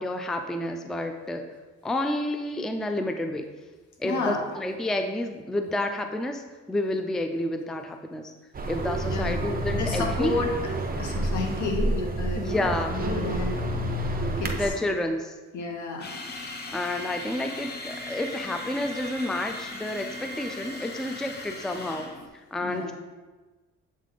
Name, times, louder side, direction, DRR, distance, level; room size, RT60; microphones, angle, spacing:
voice 1, 0.0-1.4 1.8-3.5 4.0-8.3 8.7-10.4 12.3-13.0 14.6-15.4 16.7-22.1 22.3-22.9, left 1 dB, ahead, 5 dB, 0.4 m, -30 dB
voice 2, 4.0-4.4 9.1-9.4 9.8-10.5 11.0-14.1 14.4-14.7 15.5-16.1 22.6-22.9, left 4 dB, 75° left, 2 dB, 1.2 m, -31 dB
sound 1, 8.5-14.7, right 1 dB, 30° right, 0.8 m, -29 dB
sound 2, 16.0-22.3, left 1 dB, 35° left, 0.9 m, -38 dB
7.3 x 3.3 x 4.0 m, 1.3 s
cardioid pair, 90°, 30 cm